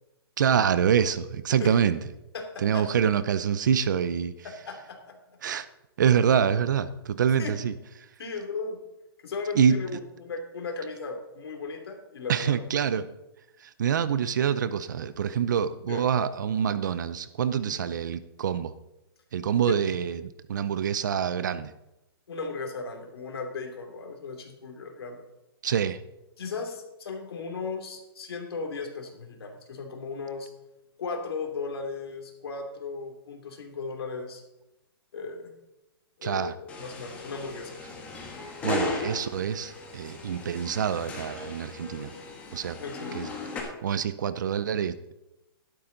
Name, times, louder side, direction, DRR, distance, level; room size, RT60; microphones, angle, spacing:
voice 1, 0.4-2.0 2.6-4.3 5.4-5.7 6.0-8.1 9.5-9.8 12.3-13.1 13.6-18.7 19.3-21.7 25.6-26.0 36.2-36.6 38.6-42.1 42.5-42.8 43.1-43.3 43.6-45.0, right 8 dB, 50° right, 14 dB, 0.6 m, -26 dB
voice 2, 2.3-2.9 4.4-5.2 7.4-7.5 8.2-8.8 9.2-12.6 15.9-16.0 17.7-17.8 19.6-19.8 22.3-25.2 26.4-30.5 31.0-34.4 35.1-35.5 36.2-37.8 42.8-43.3, left 4 dB, 75° left, 3 dB, 2.8 m, -36 dB
sound 1, 36.7-43.6, left 3 dB, 10° left, 1.3 m, -36 dB
12.5 x 11.5 x 3.9 m, 0.94 s
hypercardioid pair, 175°, 13 cm